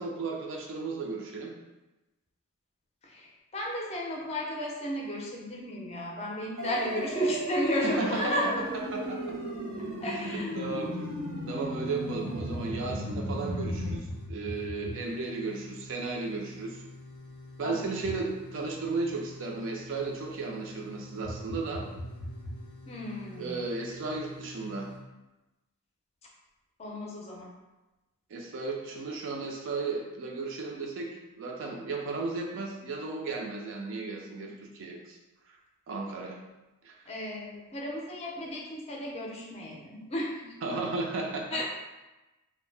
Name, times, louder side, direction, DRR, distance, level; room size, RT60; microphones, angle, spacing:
voice 1, 0.0-1.5 7.8-8.5 8.9-9.3 10.2-11.1 11.5-16.8 17.6-21.8 23.4-24.9 28.3-35.2 35.9-36.4 36.8-36.9 40.6-41.5, right 3 dB, 60° right, 0 dB, 0.4 m, -35 dB
voice 2, 3.0-8.5 10.0-10.5 17.6-17.9 22.9-23.6 26.8-27.5 37.1-40.5 41.5-41.6, equal, 30° left, -2 dB, 0.5 m, -33 dB
sound 1, 6.6-14.0, equal, 80° right, 0.8 m, -35 dB
sound 2, 11.8-25.0, left 1 dB, 85° left, 0.5 m, -43 dB
2.6 x 2.0 x 3.2 m, 1.1 s
head